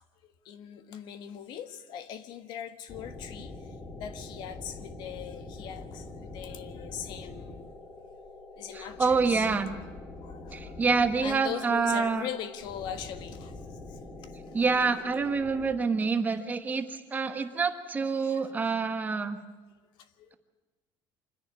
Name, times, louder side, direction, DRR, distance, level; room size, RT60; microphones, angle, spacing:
voice 1, 0.4-3.5 3.9-7.7 8.6-9.6 10.2-10.8 11.2-13.5 18.2-18.6 20.3-20.4, left 9 dB, 55° left, 1.5 m, -40 dB
sound 1, 2.9-15.7, left 2 dB, 30° left, 3.3 m, -44 dB
voice 2, 8.7-9.7 10.5-12.3 14.5-19.4, right 4 dB, 20° right, 1.3 m, -27 dB
25.5 x 10.5 x 9.8 m
cardioid pair, 160°, 9 cm